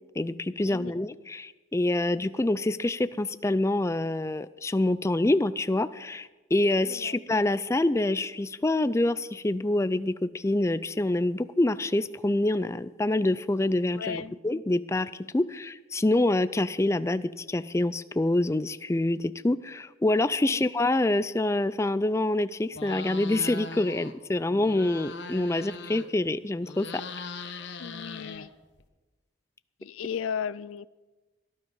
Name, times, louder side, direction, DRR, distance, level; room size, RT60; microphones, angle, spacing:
voice 1, 0.2-27.0, left 2 dB, 15° left, 14 dB, 0.4 m, -26 dB
voice 2, 13.9-14.3 20.5-20.6 27.8-28.5 29.8-30.9, left 7 dB, 90° left, 18 dB, 0.4 m, -35 dB
sound 1, 22.7-24.2 24.5-26.3 26.6-28.8, left 3 dB, 60° left, 1.1 m, -40 dB
17.5 x 12.0 x 5.5 m, 1.2 s
head